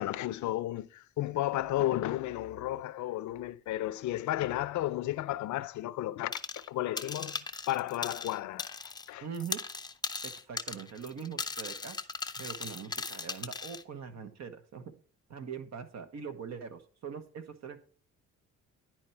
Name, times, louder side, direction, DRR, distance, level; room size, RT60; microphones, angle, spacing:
voice 1, 0.0-9.3, left 14 dB, 70° left, 0.5 m, -33 dB
sound 1, 6.3-6.7 7.0-9.1 9.3-13.8, left 4 dB, 15° left, 0.5 m, -38 dB
voice 2, 9.2-9.6 10.2-12.0 12.4-14.9 15.3-17.8, right 7 dB, 65° right, 1.2 m, -42 dB
10.5 x 4.5 x 4.4 m
cardioid pair, 90°, 30 cm